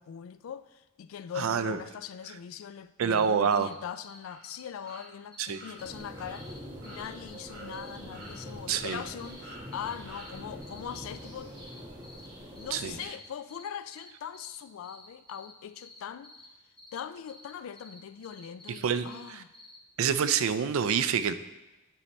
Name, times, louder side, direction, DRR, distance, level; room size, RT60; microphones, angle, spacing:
voice 1, 0.0-11.5 12.6-16.3 16.9-19.5, left 8 dB, 85° left, 0.3 m, -41 dB
voice 2, 1.4-1.8 3.0-3.7 5.4-5.6 8.7-9.0 12.7-12.9 18.8-19.4 20.0-21.3, right 7 dB, 90° right, 0.4 m, -27 dB
sound 1, 3.1-3.2 3.5-3.7 4.0-4.2 4.4-4.6 4.9-5.0 5.3-6.0 6.3-6.6 6.8-7.5 7.7-8.9 9.2-9.4 9.7-9.9 10.2-11.3 11.6-12.3 12.5-12.8 13.0-14.6 14.8-16.5 16.8-17.0 17.3-17.5 17.8-18.8 19.1-19.8, left 2 dB, 5° left, 0.7 m, -52 dB
sound 2, 4.2-4.4 4.8-5.0 5.5-5.7 6.1-6.3 6.8-7.0 7.5-7.7 8.1-8.6 8.8-9.0 9.4-9.6 10.1-10.3, right 1 dB, 75° right, 1.5 m, -48 dB
sound 3, 5.8-13.1, equal, 20° right, 1.2 m, -44 dB
9.8 x 3.3 x 4.2 m
head